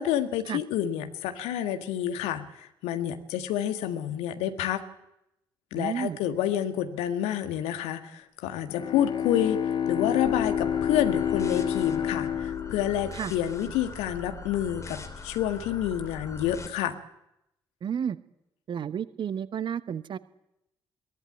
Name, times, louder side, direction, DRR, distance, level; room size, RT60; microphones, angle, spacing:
voice 1, 0.0-4.8 5.7-17.0, left 11 dB, 65° left, 8 dB, 1.7 m, -29 dB
voice 2, 5.7-6.2 13.1-13.3 17.8-18.2 18.7-20.2, right 8 dB, 45° right, 16 dB, 1.1 m, -31 dB
Bowed string instrument, 8.7-13.9, left 8 dB, 40° left, 1.6 m, -29 dB
sound 1, 10.2-16.7, left 4 dB, 25° left, 3.3 m, -41 dB
22.0 x 18.5 x 8.8 m, 0.84 s
figure-of-eight pair, 45°, 12 cm